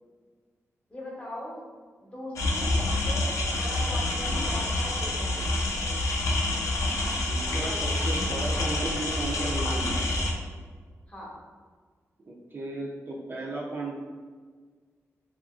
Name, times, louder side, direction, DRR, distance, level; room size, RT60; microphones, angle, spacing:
voice 1, 0.9-1.6 2.0-5.4 7.5-8.1 11.1-11.3, equal, 25° left, -5 dB, 0.8 m, -40 dB
sound 1, 2.4-10.3, left 2 dB, 85° left, 0.4 m, -27 dB
voice 2, 7.1-9.9 12.2-14.0, right 2 dB, 40° right, -4 dB, 0.4 m, -35 dB
2.7 x 2.3 x 2.4 m, 1.6 s
wide cardioid pair, 100°, 5 cm